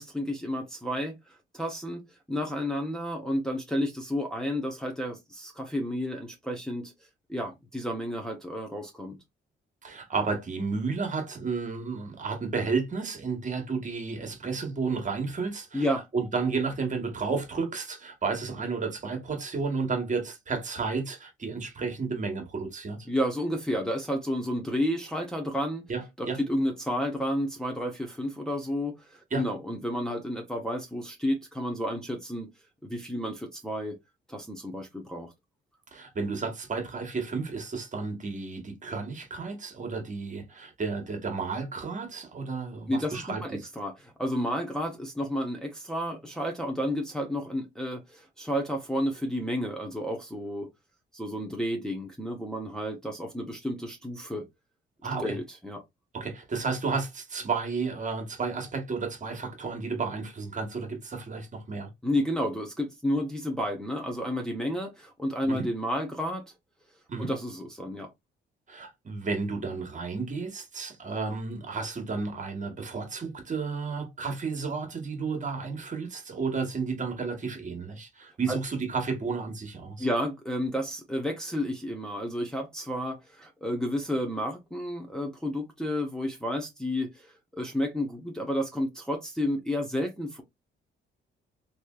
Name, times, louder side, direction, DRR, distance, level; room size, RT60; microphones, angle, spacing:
voice 1, 0.0-6.9 7.3-9.2 15.7-16.0 23.1-25.9 26.2-32.5 32.8-34.0 34.3-35.3 42.9-50.7 51.1-54.5 55.2-55.8 62.0-66.4 67.2-68.1 78.5-78.6 80.0-90.4, equal, 5° left, 0.9 m, -31 dB
voice 2, 9.8-15.9 16.1-23.1 25.9-26.4 29.3-29.4 35.9-43.7 55.0-55.4 56.1-61.9 65.5-65.7 67.1-67.3 68.7-80.1, right 4 dB, 40° right, 1.3 m, -32 dB
3.2 x 2.8 x 2.3 m
cardioid pair, 90°, 20 cm